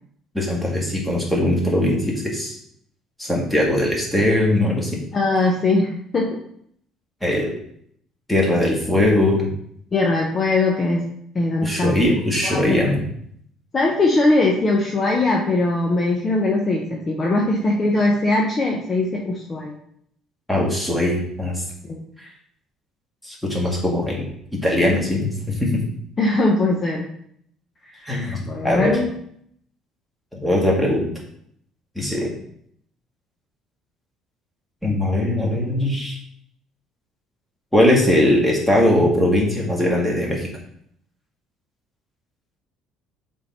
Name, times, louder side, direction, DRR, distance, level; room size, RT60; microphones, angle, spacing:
voice 1, 0.3-2.6 3.2-5.0 7.2-7.5 8.3-9.5 11.6-13.0 20.5-21.6 22.2-22.3 23.2-24.2 24.6-25.3 25.6-25.7 28.0-28.9 30.4-31.1 31.9-32.3 34.8-36.2 37.7-40.5, left 1 dB, ahead, -3 dB, 1.6 m, -20 dB
voice 2, 5.1-6.4 7.2-7.4 9.9-11.0 11.3-12.0 12.4-12.9 13.7-19.8 21.8-22.0 26.2-27.1 27.9-28.0 28.4-29.1, left 2 dB, 25° left, -1 dB, 0.7 m, -20 dB
7.0 x 3.7 x 4.1 m, 0.69 s
cardioid pair, 150°, 0 cm